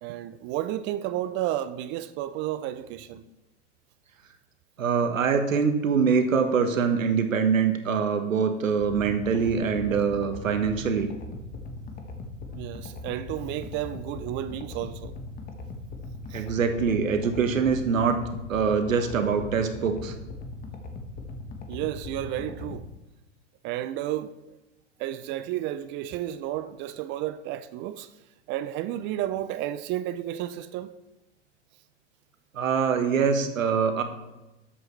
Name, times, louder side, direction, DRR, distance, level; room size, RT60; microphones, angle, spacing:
voice 1, 0.0-3.2 12.5-15.1 16.3-16.4 21.7-22.9 23.6-24.6 25.0-28.1 28.5-30.9, right 13 dB, 30° right, 0.4 m, -32 dB
voice 2, 4.8-11.1 16.3-18.2 18.5-20.1 32.5-34.0, right 6 dB, 90° right, 1.3 m, -24 dB
sound 1, 8.8-22.8, left 2 dB, 20° left, 1.3 m, -39 dB
12.5 x 7.9 x 3.2 m
hypercardioid pair, 105°, 38 cm